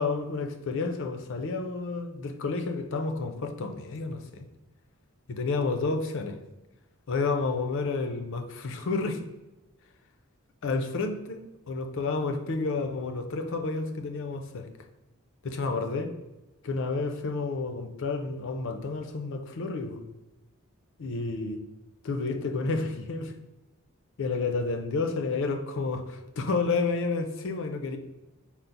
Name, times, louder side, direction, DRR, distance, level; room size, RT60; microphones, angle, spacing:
voice 1, 0.0-4.5 5.3-6.3 7.1-9.2 10.6-14.7 15.4-16.1 16.6-20.0 21.0-21.6 22.0-23.3 24.2-28.0, left 3 dB, 60° left, 6 dB, 0.5 m, -30 dB
4.4 x 2.0 x 3.9 m, 1.1 s
head